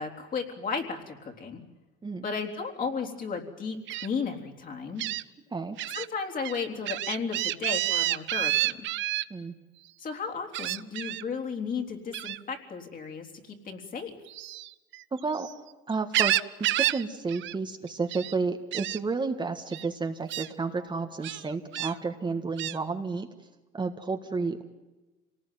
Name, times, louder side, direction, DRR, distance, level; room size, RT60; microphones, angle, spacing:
voice 1, 0.0-1.6 2.2-5.0 5.9-8.9 10.0-14.1, left 5 dB, 40° left, 3 dB, 3.8 m, -34 dB
Gull seagull, 3.9-4.1 5.0-5.2 5.8-6.1 6.4-9.2 10.5-11.2 12.1-12.4 14.3-15.5 15.9-17.0 17.3-17.6 17.9-18.3 18.7-19.0 19.7-19.9 20.3-20.5 21.2-21.9 22.6-22.8, right 15 dB, 65° right, 0.7 m, -29 dB
voice 2, 15.1-15.5 15.9-16.3 16.6-23.3 23.7-24.6, right 4 dB, 20° right, 5 dB, 1.6 m, -31 dB
26.5 x 19.0 x 9.4 m, 1.1 s
cardioid pair, 110°, 21 cm